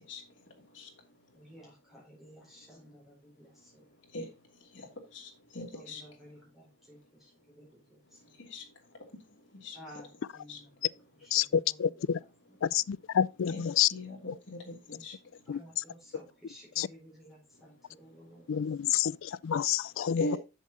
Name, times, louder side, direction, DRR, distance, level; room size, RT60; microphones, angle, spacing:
voice 1, 1.3-3.9 5.7-8.4 9.7-10.8 11.1-12.6 15.5-19.0, equal, ahead, 4.6 m, -55 dB
voice 2, 5.5-6.0 8.5-8.6 9.6-9.8 10.5-10.6 13.5-15.1 20.2-20.4, left 1 dB, 65° left, 2.7 m, -39 dB
voice 3, 11.8-12.2 12.6-13.9 15.5-15.6 16.8-16.9 18.5-20.4, left 9 dB, 90° left, 0.4 m, -28 dB
7.5 x 7.4 x 4.0 m
head